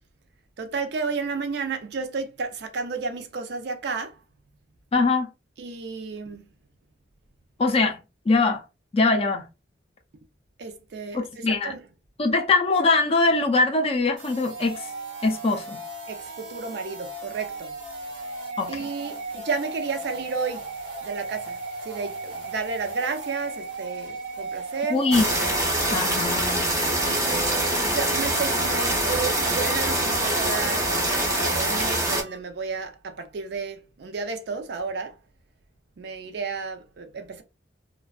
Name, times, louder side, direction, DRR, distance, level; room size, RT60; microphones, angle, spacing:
voice 1, 0.6-4.2 5.6-6.5 10.6-11.9 16.1-17.7 18.7-20.7 21.0-25.0 27.0-35.2 36.0-37.4, right 5 dB, 65° right, 0.4 m, -32 dB
voice 2, 4.9-5.3 7.6-8.0 8.3-8.6 8.9-9.4 11.1-11.7 12.2-14.9 15.2-15.8 18.6-18.9 24.9-25.3 25.9-26.7, left 3 dB, 35° left, 0.4 m, -22 dB
sound 1, 14.2-32.4, right 3 dB, 90° right, 1.0 m, -36 dB
sound 2, 25.1-32.2, right 1 dB, 15° right, 0.6 m, -24 dB
2.5 x 2.1 x 2.3 m
head